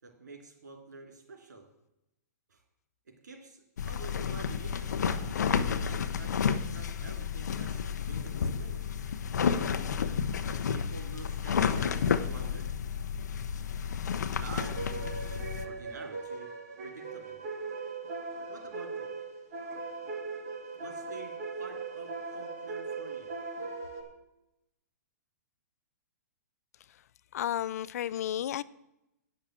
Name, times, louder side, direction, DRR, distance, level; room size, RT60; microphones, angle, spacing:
voice 1, 0.0-1.7 2.5-2.6 3.1-8.9 10.4-12.7 14.3-16.5 16.8-17.4 18.5-19.1 20.8-23.3, right 4 dB, 85° right, 3.2 m, -48 dB
sound 1, 3.8-15.7, left 7 dB, 80° left, 0.9 m, -31 dB
sound 2, 14.6-24.0, right 4 dB, 50° right, 3.1 m, -39 dB
voice 2, 27.3-28.6, left 11 dB, 60° left, 0.5 m, -32 dB
9.8 x 6.5 x 7.5 m
hypercardioid pair, 145°, 9 cm